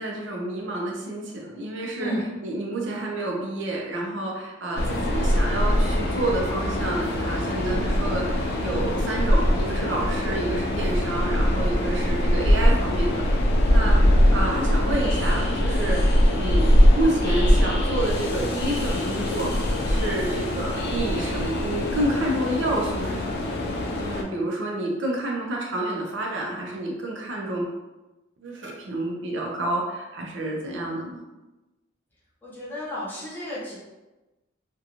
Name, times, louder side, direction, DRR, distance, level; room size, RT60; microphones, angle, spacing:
voice 1, 0.0-13.2 13.4-16.0 16.3-16.7 17.0-23.6 24.0-27.7 28.4-31.2, right 1 dB, 65° right, -1 dB, 0.5 m, -29 dB
Train, 4.8-24.2, equal, 55° left, 0.4 m, -22 dB
voice 2, 32.4-33.7, equal, 10° left, -9 dB, 0.8 m, -32 dB
2.4 x 2.2 x 2.8 m, 1.1 s
head